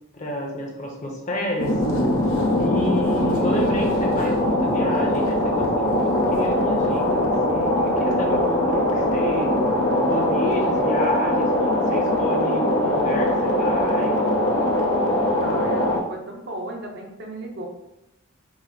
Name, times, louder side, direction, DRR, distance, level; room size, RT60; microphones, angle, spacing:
voice 1, 0.1-1.7 2.6-9.5 10.1-14.2, left 1 dB, 35° left, 0 dB, 0.8 m, -29 dB
sound 1, 1.6-16.0, left 1 dB, 85° left, 0.7 m, -21 dB
voice 2, 15.4-17.7, right 1 dB, 55° right, 1 dB, 0.7 m, -35 dB
4.7 x 2.0 x 3.9 m, 0.93 s
head